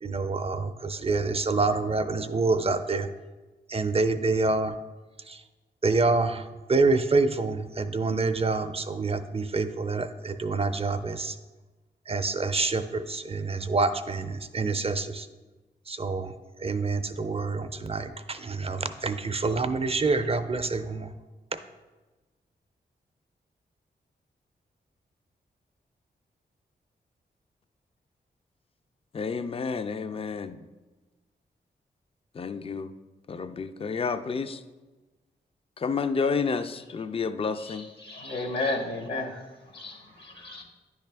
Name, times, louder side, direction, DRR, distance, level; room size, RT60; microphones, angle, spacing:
voice 1, 0.0-3.1 3.7-4.8 5.3-5.4 5.8-11.4 12.1-15.3 15.9-16.3 16.6-21.1, right 3 dB, 30° right, 10 dB, 0.5 m, -27 dB
voice 2, 29.1-30.6 32.4-32.9 33.3-34.6 35.8-37.9, left 5 dB, 30° left, 11 dB, 0.4 m, -30 dB
voice 3, 37.6-39.4 39.7-40.6, left 2 dB, 65° left, 3 dB, 1.0 m, -33 dB
9.8 x 3.3 x 3.4 m, 1.2 s
supercardioid pair, 40°, 19 cm